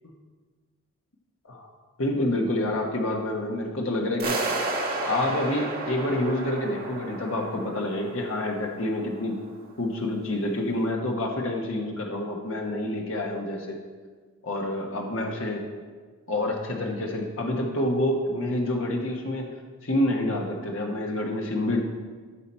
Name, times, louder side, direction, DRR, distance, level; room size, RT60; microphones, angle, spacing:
voice 1, 2.0-4.4 5.0-9.4 9.8-13.8 14.4-15.6 16.3-19.5 19.8-21.8, left 1 dB, 60° left, 0 dB, 1.2 m, -28 dB
sound 1, 4.2-9.1, right 2 dB, 40° right, 1.4 m, -32 dB
14.0 x 5.9 x 4.4 m, 1.5 s
head